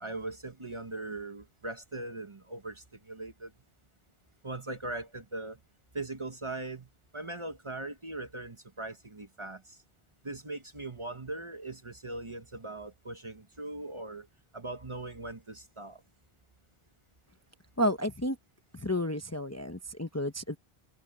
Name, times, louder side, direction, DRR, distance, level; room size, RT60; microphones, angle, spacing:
voice 1, 0.0-3.5 4.4-5.6 5.9-9.8 10.2-14.3 14.5-16.0, right 2 dB, 30° right, 1.1 m, -40 dB
voice 2, 17.8-18.4 18.7-20.6, equal, 15° left, 0.8 m, -31 dB
omnidirectional pair, 1.0 m